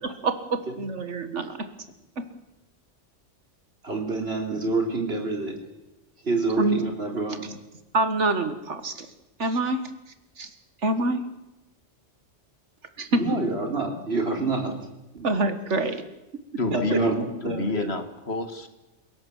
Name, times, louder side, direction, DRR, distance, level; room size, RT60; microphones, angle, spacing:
voice 1, 0.0-1.7 2.2-2.3 6.5-6.8 7.9-9.1 9.4-9.8 10.4-10.5 10.8-11.2 13.0-13.2 15.2-16.0 16.9-17.0, right 2 dB, 75° right, 9 dB, 1.9 m, -26 dB
voice 2, 3.8-5.5 6.2-7.4 13.2-14.8 15.1-15.3 16.7-17.9, right 3 dB, 55° right, 2 dB, 4.0 m, -27 dB
voice 3, 16.6-17.1 17.4-18.7, left 2 dB, 60° left, 8 dB, 2.2 m, -28 dB
28.0 x 17.5 x 7.3 m, 0.98 s
omnidirectional pair, 1.2 m